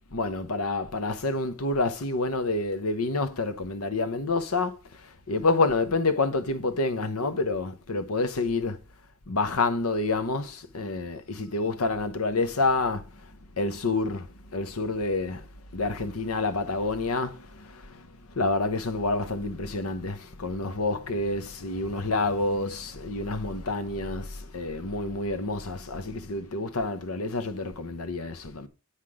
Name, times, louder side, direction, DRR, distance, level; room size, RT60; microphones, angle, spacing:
voice 1, 0.1-8.8 9.3-15.5 15.7-28.7, left 3 dB, 80° left, 1.0 m, -28 dB
8.3 x 5.9 x 4.9 m
head